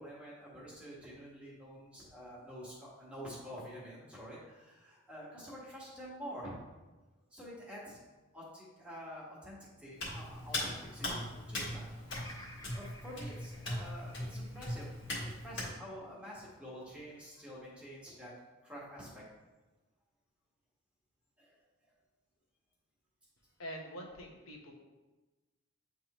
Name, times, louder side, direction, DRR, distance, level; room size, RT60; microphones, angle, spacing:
voice 1, 0.0-6.6 7.3-8.0 8.3-11.9 12.7-18.3 18.6-19.2 21.4-21.5, equal, 5° right, -7 dB, 1.5 m, -48 dB
Hands, 10.0-15.7, left 1 dB, 55° left, 1.7 m, -40 dB
Bird vocalization bird call bird song, 12.1-16.3 16.9-17.6, left 1 dB, 20° left, 0.6 m, -55 dB
voice 2, 23.6-24.7, equal, 80° left, 0 dB, 1.1 m, -45 dB
9.1 x 3.5 x 3.0 m, 1.2 s
head